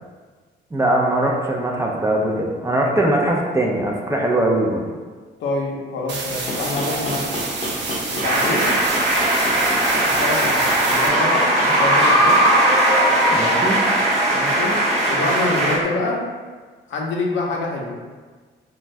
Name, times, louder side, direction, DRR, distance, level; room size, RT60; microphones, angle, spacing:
voice 1, 0.7-4.8 13.3-13.8, right 1 dB, 15° right, -1 dB, 0.4 m, -21 dB
voice 2, 5.4-7.4 8.1-8.7 10.0-12.4 14.3-14.7 15.1-16.2 16.9-18.0, left 2 dB, 75° left, -1 dB, 0.6 m, -26 dB
sound 1, 6.1-11.1, right 3 dB, 65° right, 0.6 m, -29 dB
sound 2, 6.2-15.8, left 1 dB, 30° left, 0.7 m, -32 dB
sound 3, 8.2-15.8, right 1 dB, 35° right, 0.8 m, -18 dB
2.5 x 2.2 x 3.1 m, 1.4 s
cardioid pair, 90°, 20 cm